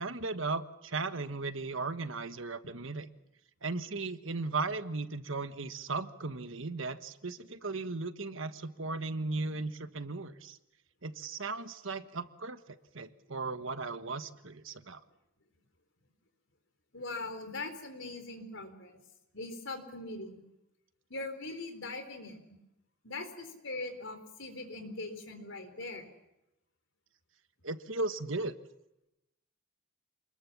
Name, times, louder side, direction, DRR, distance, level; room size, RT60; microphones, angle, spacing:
voice 1, 0.0-3.1 3.6-10.6 11.0-15.0 27.6-28.5, right 3 dB, 70° right, 10 dB, 1.3 m, -36 dB
voice 2, 16.9-19.0 19.3-20.4 21.1-22.4 23.0-26.1, left 2 dB, 65° left, 7 dB, 4.2 m, -41 dB
28.0 x 21.0 x 7.2 m, 0.89 s
head